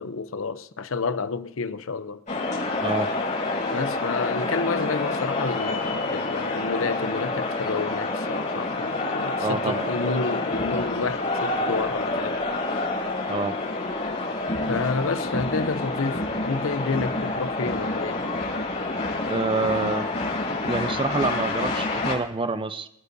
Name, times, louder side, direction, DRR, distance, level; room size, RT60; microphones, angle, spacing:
voice 1, 0.0-2.2 3.7-12.4 14.7-18.2, left 4 dB, 75° left, 0.7 m, -29 dB
sound 1, 2.3-22.1, left 2 dB, 35° left, 6.1 m, -28 dB
voice 2, 9.4-10.0 13.3-13.6 19.2-20.1 20.6-22.9, right 3 dB, 25° right, 0.6 m, -27 dB
27.0 x 9.7 x 2.7 m
head